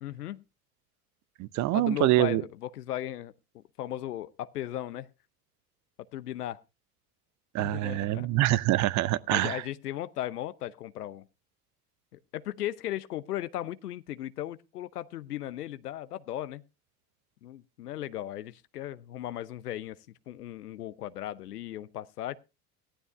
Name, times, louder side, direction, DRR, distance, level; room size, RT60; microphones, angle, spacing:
voice 1, 0.0-0.4 1.7-5.1 6.1-6.6 7.6-8.3 9.3-11.3 12.1-16.6 17.4-20.0 20.3-22.4, left 13 dB, 75° left, 0.8 m, -37 dB
voice 2, 1.4-2.4 7.5-9.6, right 16 dB, 40° right, 0.7 m, -25 dB
17.5 x 12.5 x 2.4 m
figure-of-eight pair, 75°, 46 cm